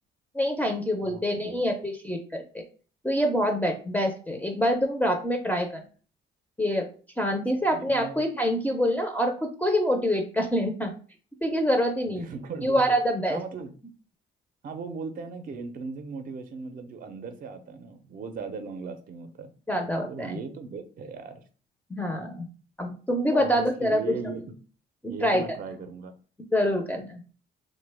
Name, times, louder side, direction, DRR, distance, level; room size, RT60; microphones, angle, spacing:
voice 1, 0.3-2.6 3.0-5.8 6.6-6.9 7.2-10.9 11.4-12.2 12.6-13.4 19.7-20.4 21.9-22.5 22.8-24.1 25.0-25.4 26.5-27.2, equal, 10° left, 1 dB, 0.5 m, -26 dB
voice 2, 1.0-1.6 7.7-8.2 12.1-13.0 13.3-13.7 14.6-19.5 20.1-21.4 23.3-24.5 25.1-26.1, right 4 dB, 45° right, 7 dB, 0.5 m, -37 dB
2.8 x 2.1 x 3.3 m, 0.39 s
cardioid pair, 90°, 20 cm